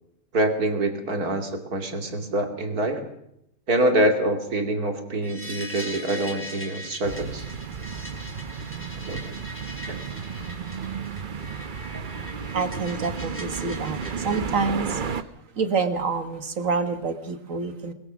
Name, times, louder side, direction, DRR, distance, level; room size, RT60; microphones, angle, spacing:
voice 1, 0.3-3.0 3.7-7.4 9.1-9.3 9.9-10.0, right 1 dB, 80° right, 6 dB, 3.1 m, -25 dB
sound 1, 5.2-14.4, equal, 10° left, 3.5 m, -41 dB
sound 2, 7.0-15.2, right 6 dB, 40° right, 0.9 m, -33 dB
voice 2, 12.5-15.0 15.5-17.9, right 4 dB, 60° right, 10 dB, 1.9 m, -27 dB
22.0 x 20.5 x 6.3 m, 0.78 s
omnidirectional pair, 1.6 m